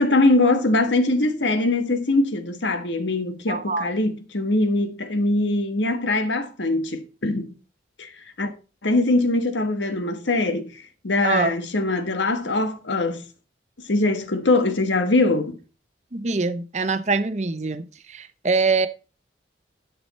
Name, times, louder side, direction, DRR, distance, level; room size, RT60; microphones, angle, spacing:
voice 1, 0.0-7.5 8.0-8.1 8.4-8.5 8.8-10.7 11.0-13.3 13.9-15.6, left 2 dB, 90° left, 1.5 m, -22 dB
voice 2, 3.5-3.9 11.2-11.5 16.1-18.9, right 4 dB, 40° right, 0.7 m, -24 dB
11.5 x 6.9 x 4.2 m
head